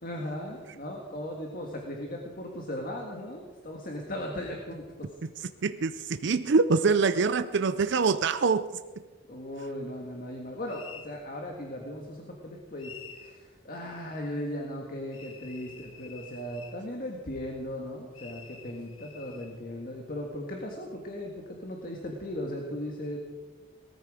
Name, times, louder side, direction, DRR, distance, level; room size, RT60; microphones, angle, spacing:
voice 1, 0.0-5.1 9.3-23.2, left 1 dB, 45° left, 1.7 m, -37 dB
voice 2, 5.6-8.8, right 4 dB, 55° right, 0.5 m, -24 dB
sound 1, 10.7-11.1 12.8-13.4 15.1-16.8 18.1-19.5, left 7 dB, 90° left, 1.8 m, -48 dB
19.0 x 14.0 x 5.0 m
head